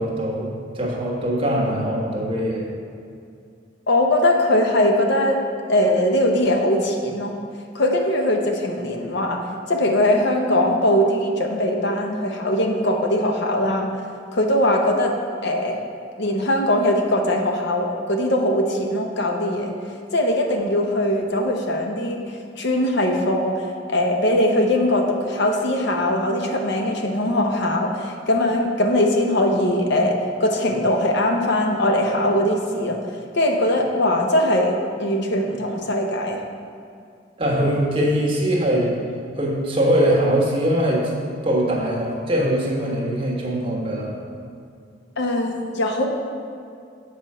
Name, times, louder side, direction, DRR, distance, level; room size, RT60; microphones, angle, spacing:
voice 1, 0.0-2.7 37.4-38.9 39.3-41.1 41.4-44.1, equal, 30° right, -3 dB, 1.5 m, -22 dB
voice 2, 3.9-5.4 5.7-7.3 7.7-9.4 9.7-13.9 14.3-15.1 15.4-15.8 16.2-19.8 20.1-33.0 33.3-36.4 45.2-46.0, left 1 dB, 65° left, 2 dB, 0.9 m, -21 dB
7.7 x 4.8 x 5.5 m, 2.4 s
head